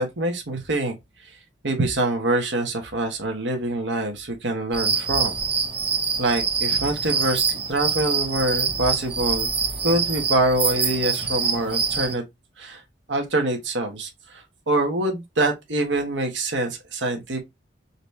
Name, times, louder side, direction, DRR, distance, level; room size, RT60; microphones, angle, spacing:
voice 1, 0.0-5.4 6.2-9.5 9.8-12.2 12.6-12.8 13.1-17.4, right 2 dB, 85° right, 1.2 m, -25 dB
sound 1, 4.7-12.1, right 5 dB, 30° right, 1.1 m, -25 dB
4.1 x 2.8 x 3.2 m
head